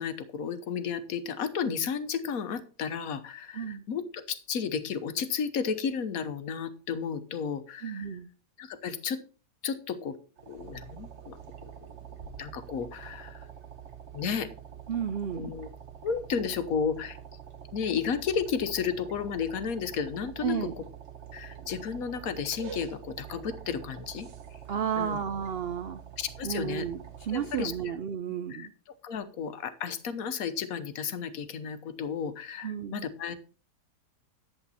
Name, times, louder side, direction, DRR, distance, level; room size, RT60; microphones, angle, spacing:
voice 1, 0.0-8.0 8.6-9.2 9.6-10.1 10.5-11.4 11.6-11.7 12.1-13.5 14.1-14.5 15.3-15.7 16.0-17.2 17.7-20.6 21.3-24.3 25.0-25.2 26.2-26.9 27.3-27.7 28.5-28.7 29.0-33.4, left 6 dB, 60° left, 11 dB, 1.4 m, -33 dB
voice 2, 3.5-3.8 7.8-8.3 14.9-15.5 20.4-20.7 24.7-26.0 26.4-28.7 32.6-33.1, right 8 dB, 80° right, 11 dB, 0.5 m, -32 dB
sound 1, 10.4-27.9, right 8 dB, 45° right, 1.2 m, -46 dB
11.0 x 7.9 x 4.2 m, 0.37 s
omnidirectional pair, 1.8 m